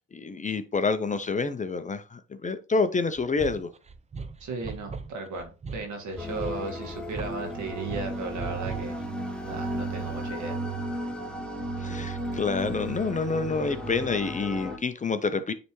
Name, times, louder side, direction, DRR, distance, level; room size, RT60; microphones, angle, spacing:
voice 1, 0.1-3.7 11.8-15.5, left 4 dB, 25° left, 0.6 m, -28 dB
sound 1, 3.2-9.0, right 4 dB, 20° right, 0.5 m, -39 dB
voice 2, 4.4-9.0 9.5-10.6, right 3 dB, 75° right, 1.9 m, -36 dB
sound 2, 6.2-14.8, right 1 dB, 5° left, 1.1 m, -34 dB
9.4 x 3.4 x 3.1 m
cardioid pair, 90°, 30 cm